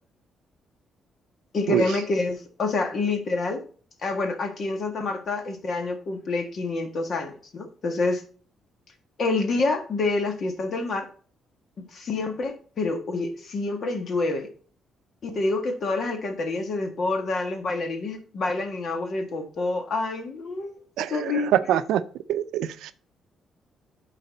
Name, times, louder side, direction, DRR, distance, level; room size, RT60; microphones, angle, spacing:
voice 1, 1.5-3.6 4.0-8.2 9.2-11.1 11.8-14.5 15.2-20.8 21.1-21.5, left 3 dB, 55° left, 5 dB, 1.6 m, -27 dB
voice 2, 21.0-22.0 22.3-22.9, right 11 dB, 85° right, 13 dB, 0.5 m, -24 dB
11.0 x 4.1 x 4.0 m, 0.42 s
cardioid pair, 90°, 0 cm